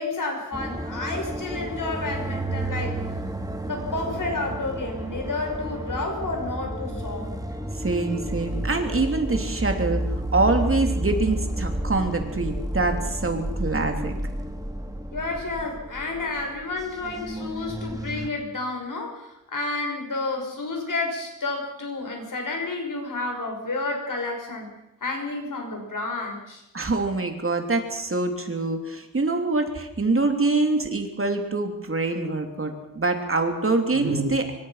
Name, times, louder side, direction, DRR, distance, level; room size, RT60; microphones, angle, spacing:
voice 1, 0.0-3.0 3.7-7.3 15.1-24.7 25.0-26.6, left 3 dB, 70° left, 3 dB, 6.2 m, -30 dB
sound 1, 0.5-18.3, right 1 dB, 10° right, 2.3 m, -31 dB
voice 2, 7.7-10.1 10.3-14.1 26.7-34.5, right 3 dB, 40° right, 4 dB, 3.2 m, -25 dB
25.5 x 24.0 x 5.9 m, 0.86 s
wide cardioid pair, 125°, 33 cm